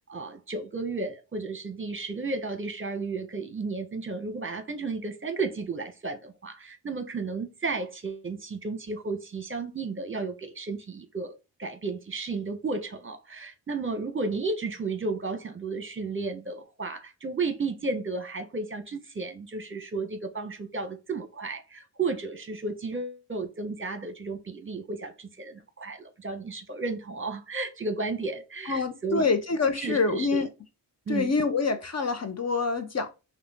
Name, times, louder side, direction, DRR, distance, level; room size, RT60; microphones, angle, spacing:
voice 1, 0.0-11.3 11.6-29.3 29.8-30.4 31.1-31.4, right 3 dB, 30° right, 1.0 m, -33 dB
voice 2, 28.7-30.5 31.1-33.1, left 4 dB, 40° left, 0.8 m, -26 dB
5.4 x 2.4 x 3.6 m
cardioid pair, 60°, 42 cm